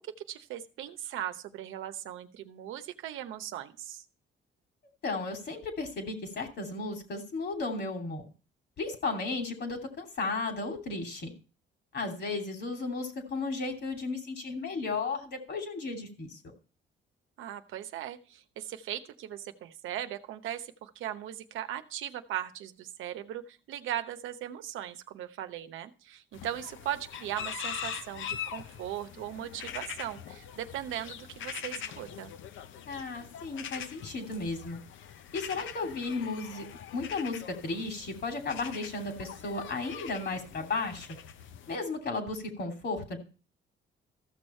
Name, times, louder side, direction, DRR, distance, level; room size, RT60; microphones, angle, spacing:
voice 1, 0.3-4.0 17.4-32.3, right 11 dB, 85° right, 10 dB, 0.9 m, -38 dB
voice 2, 5.0-8.2 8.8-11.3 11.9-16.5 32.8-34.8 35.3-36.6 36.9-41.1 41.7-43.2, left 3 dB, 60° left, 4 dB, 2.8 m, -34 dB
sound 1, 26.3-41.8, left 9 dB, 75° left, 0.7 m, -43 dB
14.0 x 6.4 x 4.3 m, 0.36 s
cardioid pair, 90°, 20 cm